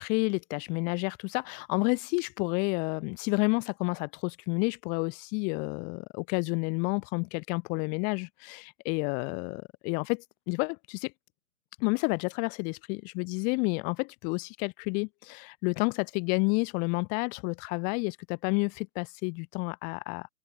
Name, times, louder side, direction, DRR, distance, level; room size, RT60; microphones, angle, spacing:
voice 1, 0.0-11.1 11.8-20.3, left 33 dB, 15° left, 1.4 m, -30 dB
hypercardioid pair, 145°, 46 cm